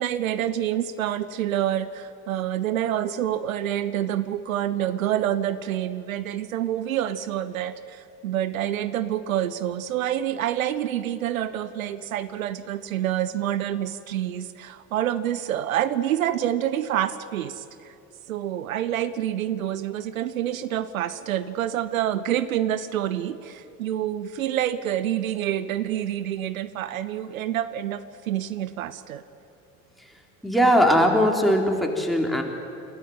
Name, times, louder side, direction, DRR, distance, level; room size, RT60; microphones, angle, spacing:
voice 1, 0.0-17.9 18.3-29.2, right 11 dB, 85° right, 15 dB, 0.6 m, -27 dB
voice 2, 30.4-32.4, equal, ahead, 2 dB, 4.0 m, -20 dB
27.0 x 13.5 x 9.8 m, 2.7 s
figure-of-eight pair, 45°, 41 cm